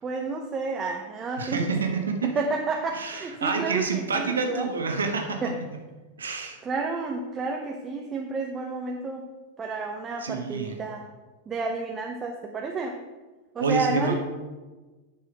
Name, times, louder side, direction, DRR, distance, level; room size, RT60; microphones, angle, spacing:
voice 1, 0.0-1.8 2.2-4.7 5.4-5.6 6.6-9.2 9.6-11.1 11.5-13.0 13.5-14.2, right 3 dB, 20° right, 2 dB, 0.7 m, -30 dB
voice 2, 1.4-2.3 2.9-5.5 6.2-6.6 10.2-10.7 13.6-14.2, right 4 dB, 70° right, 4 dB, 1.3 m, -28 dB
9.0 x 6.4 x 4.9 m, 1.3 s
figure-of-eight pair, 90°, 0 cm